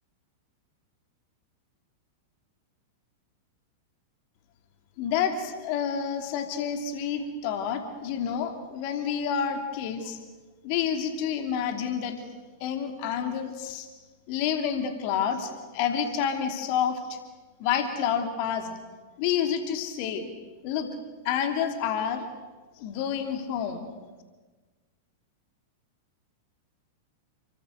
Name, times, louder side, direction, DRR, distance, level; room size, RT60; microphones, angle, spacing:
voice 1, 5.0-10.2 10.6-12.1 12.6-13.9 14.3-17.2 17.6-18.7 19.2-20.3 20.6-20.9 21.2-22.3 22.8-23.9, left 8 dB, 50° left, 6 dB, 3.0 m, -29 dB
30.0 x 24.0 x 6.6 m, 1.3 s
figure-of-eight pair, 95°, 0 cm